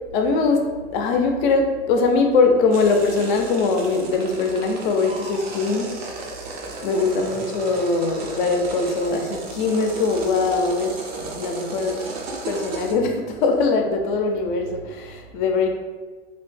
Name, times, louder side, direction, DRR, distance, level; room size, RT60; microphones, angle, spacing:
voice 1, 0.1-0.6 0.9-5.9 6.8-12.1 12.4-15.7, left 4 dB, 50° left, 4 dB, 0.5 m, -21 dB
sound 1, 2.7-12.9, right 2 dB, 30° right, 0.4 m, -34 dB
2.8 x 2.0 x 3.1 m, 1.4 s
hypercardioid pair, 130°, 32 cm